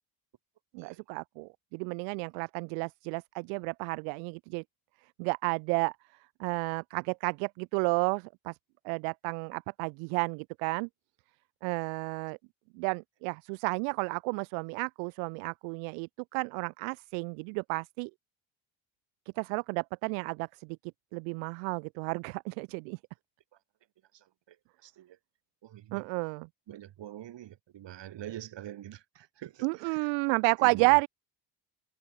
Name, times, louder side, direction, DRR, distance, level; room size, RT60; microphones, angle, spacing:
voice 1, 0.7-4.6 5.2-5.9 6.4-8.6 8.8-10.9 11.6-12.4 12.7-18.1 19.4-20.8 21.1-23.0 25.9-26.5 29.6-31.1, right 40 dB or more, 80° right, 0.7 m, -31 dB
voice 2, 24.1-24.6 24.8-25.2 25.6-26.1 26.7-30.1 30.6-31.0, right 12 dB, 60° right, 3.9 m, -45 dB
hypercardioid pair, 65°, 49 cm